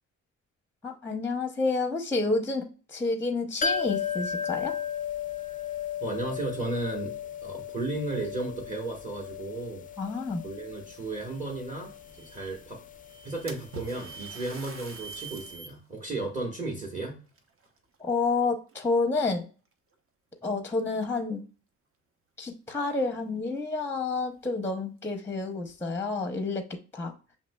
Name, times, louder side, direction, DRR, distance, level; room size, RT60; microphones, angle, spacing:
voice 1, 0.8-4.8 10.0-10.4 18.0-19.5 20.4-21.4 22.4-27.1, left 3 dB, 10° left, 5 dB, 0.7 m, -29 dB
sound 1, 3.6-15.2 15.5-15.6, left 7 dB, 30° left, 0.4 m, -36 dB
voice 2, 6.0-7.1 7.4-9.8 10.4-12.8 13.2-17.2, right 2 dB, 25° right, 0 dB, 1.3 m, -34 dB
sound 2, 11.3-11.6 12.0-12.5 13.0-15.7, right 6 dB, 80° right, 0.9 m, -47 dB
Splash splatter, 13.5-15.8 16.3-16.4 17.3-18.3 18.7-19.1 19.9-20.0 20.5-20.6 22.8-22.9 23.2-23.3 23.9-24.0 24.4-24.5 25.2-25.8, right 3 dB, 45° right, 0.9 m, -46 dB
7.2 x 2.8 x 2.2 m, 0.36 s
cardioid pair, 90°, 30 cm